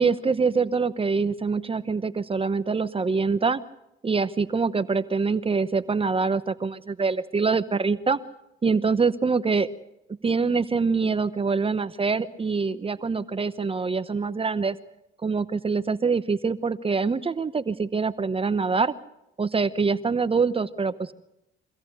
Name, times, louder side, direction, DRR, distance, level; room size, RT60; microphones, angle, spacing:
voice 1, 0.0-3.6 4.0-8.2 8.6-9.7 10.2-14.8 15.2-18.9 19.4-21.1, right 4 dB, 30° right, 13 dB, 0.9 m, -24 dB
24.5 x 16.5 x 7.9 m, 0.86 s
cardioid pair, 90°, 20 cm